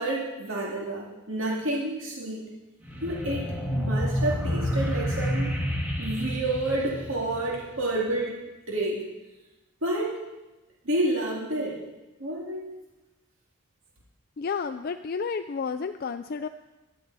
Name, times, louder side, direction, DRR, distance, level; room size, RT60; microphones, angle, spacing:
voice 1, 0.0-2.4 3.0-5.5 6.0-8.4 8.7-9.0 9.8-10.1 10.8-11.8 12.2-12.7, right 1 dB, 70° right, -3 dB, 2.4 m, -29 dB
sound 1, 2.8-7.8, equal, 10° right, 1.8 m, -29 dB
voice 2, 14.4-16.5, left 5 dB, 45° left, 8 dB, 0.4 m, -31 dB
15.5 x 11.5 x 4.1 m, 1.1 s
head